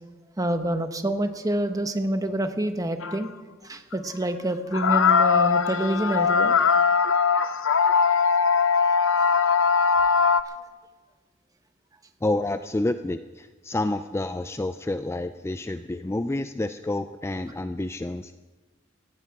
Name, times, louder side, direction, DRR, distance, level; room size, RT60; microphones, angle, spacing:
voice 1, 0.4-3.3 3.6-6.6, right 1 dB, 20° right, 8 dB, 1.0 m, -27 dB
sound 1, 3.0-3.2 3.9-4.0 4.7-10.4, left 6 dB, 80° left, 0.6 m, -20 dB
voice 2, 12.2-18.3, left 2 dB, 15° left, 10 dB, 0.4 m, -29 dB
18.0 x 15.0 x 4.7 m, 1.3 s
head